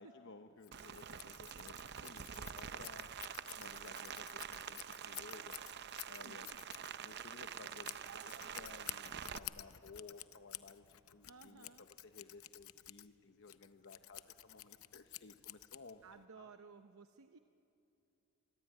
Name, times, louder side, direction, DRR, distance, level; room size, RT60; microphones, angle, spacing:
voice 1, 0.0-5.6 6.0-6.5 7.0-16.5, left 3 dB, 60° left, 6 dB, 0.9 m, -57 dB
Scissors, 0.6-16.2, left 15 dB, 85° left, 0.7 m, -52 dB
Rain, 0.7-9.4, right 8 dB, 55° right, 0.6 m, -47 dB
voice 2, 6.2-6.6 11.2-11.9 16.0-17.4, right 5 dB, 90° right, 9 dB, 0.7 m, -57 dB
sound 1, 7.7-12.6, equal, 15° right, 3.4 m, -74 dB
25.0 x 23.5 x 8.9 m, 2.8 s
head